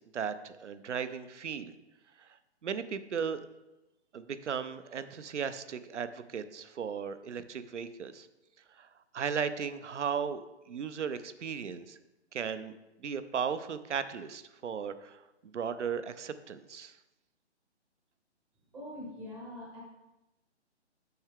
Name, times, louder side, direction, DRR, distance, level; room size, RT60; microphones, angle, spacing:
voice 1, 0.0-1.7 2.2-2.3 2.6-3.5 4.1-8.3 8.7-12.0 12.3-12.7 13.0-17.0, right 7 dB, 90° right, 12 dB, 0.6 m, -36 dB
voice 2, 18.7-19.8, left 1 dB, 5° right, -3 dB, 0.6 m, -43 dB
7.8 x 4.6 x 3.7 m, 0.99 s
hypercardioid pair, 150°, 34 cm